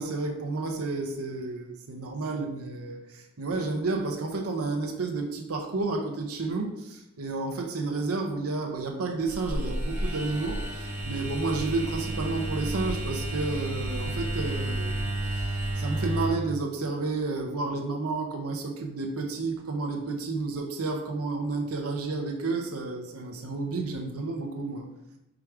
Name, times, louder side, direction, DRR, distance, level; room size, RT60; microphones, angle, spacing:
voice 1, 0.0-24.9, right 3 dB, 80° right, 2 dB, 0.7 m, -31 dB
sound 1, 9.3-16.3, right 1 dB, 10° right, 1.2 m, -31 dB
4.9 x 4.7 x 4.8 m, 0.90 s
head